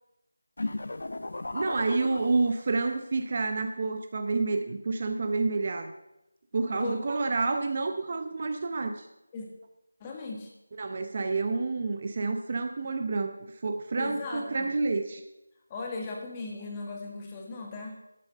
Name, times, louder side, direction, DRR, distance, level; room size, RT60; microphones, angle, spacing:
sound 1, 0.6-3.0, left 2 dB, 60° left, 0.6 m, -36 dB
voice 1, 1.5-5.9 6.5-9.1 10.8-15.2, right 3 dB, 35° right, 7 dB, 0.8 m, -29 dB
voice 2, 6.7-7.0 9.3-9.5 10.0-10.5 14.0-14.8 15.7-18.0, left 3 dB, 15° left, 1 dB, 1.6 m, -37 dB
12.0 x 7.1 x 6.5 m, 0.91 s
figure-of-eight pair, 170°, 0 cm